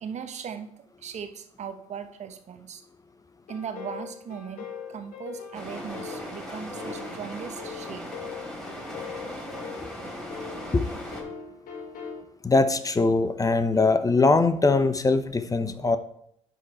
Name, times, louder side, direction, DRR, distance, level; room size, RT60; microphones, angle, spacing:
voice 1, 0.0-0.7 1.0-2.8 3.5-8.2, right 7 dB, 45° right, 8 dB, 1.1 m, -38 dB
sound 1, 3.5-12.2, left 6 dB, 60° left, 1.8 m, -41 dB
sound 2, 5.5-11.2, equal, 5° left, 3.4 m, -38 dB
voice 2, 12.4-16.0, left 3 dB, 20° left, 11 dB, 0.8 m, -21 dB
9.8 x 5.6 x 4.3 m, 0.70 s
hypercardioid pair, 55°, 16 cm